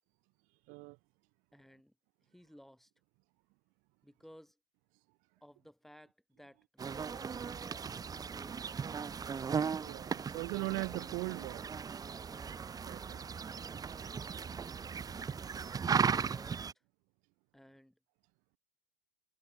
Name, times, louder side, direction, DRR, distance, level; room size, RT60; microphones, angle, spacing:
voice 1, 1.5-1.9 2.2-2.9 4.0-4.6 5.4-9.1 12.2-12.8 15.1-15.6 16.0-16.7 17.5-18.0, equal, ahead, 4.3 m, -58 dB
sound 1, 6.8-16.7, right 6 dB, 20° right, 1.5 m, -37 dB
voice 2, 9.8-11.6 12.9-13.3, right 29 dB, 45° right, 0.5 m, -39 dB
hypercardioid pair, 90°, 18 cm